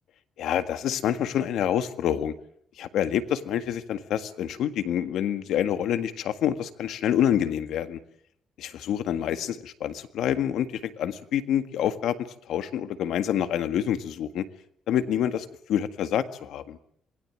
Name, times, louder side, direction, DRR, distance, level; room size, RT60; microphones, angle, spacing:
voice 1, 0.4-2.3 2.8-8.0 8.6-12.2 12.5-14.5 14.9-16.8, left 10 dB, 70° left, 10 dB, 1.7 m, -27 dB
27.0 x 20.5 x 7.6 m, 0.67 s
cardioid pair, 175°, 0 cm